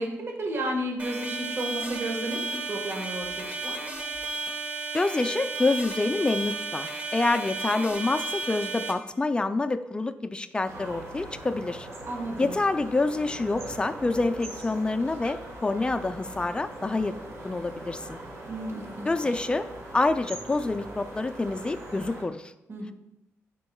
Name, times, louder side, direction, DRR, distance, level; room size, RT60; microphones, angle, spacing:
voice 1, 0.0-2.4 2.7-3.8 12.0-12.6 18.5-19.1 22.7-22.9, right 1 dB, 55° right, 1 dB, 1.6 m, -32 dB
sound 1, 1.0-8.9, right 3 dB, 30° right, 1.2 m, -33 dB
voice 2, 4.9-11.9 12.4-17.2 17.4-18.2 19.1-19.7 19.9-22.5, left 3 dB, 20° left, 8 dB, 0.4 m, -27 dB
sound 2, 10.7-22.2, right 1 dB, 80° right, 1.8 m, -41 dB
11.0 x 4.4 x 2.3 m, 0.91 s
cardioid pair, 90°, 5 cm